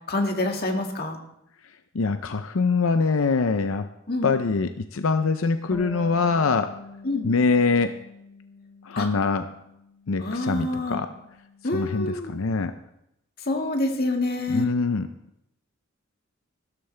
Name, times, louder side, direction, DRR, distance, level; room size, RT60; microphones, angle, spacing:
voice 1, 0.1-1.2 4.1-4.3 7.0-7.3 9.0-9.1 10.2-11.0 11.6-12.3 13.5-14.7, left 2 dB, 50° left, 2 dB, 1.9 m, -26 dB
voice 2, 1.9-3.9 4.2-6.7 7.2-7.9 8.8-9.5 10.1-11.1 11.7-12.7 14.5-15.1, left 4 dB, 90° left, 9 dB, 0.6 m, -23 dB
Bass guitar, 5.7-12.0, left 1 dB, ahead, 1.4 m, -45 dB
15.5 x 13.0 x 3.3 m, 0.80 s
head